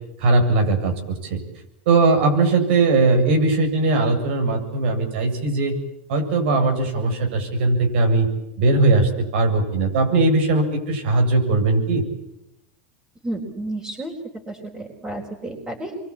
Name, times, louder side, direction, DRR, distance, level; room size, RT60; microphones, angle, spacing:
voice 1, 0.2-1.4 1.9-5.8 6.1-8.3 8.6-12.0, right 3 dB, 75° right, 4 dB, 7.6 m, -19 dB
voice 2, 13.2-14.1 14.5-16.0, right 1 dB, 15° right, -2 dB, 4.5 m, -31 dB
27.5 x 23.5 x 8.8 m, 0.87 s
supercardioid pair, 140°, 6 cm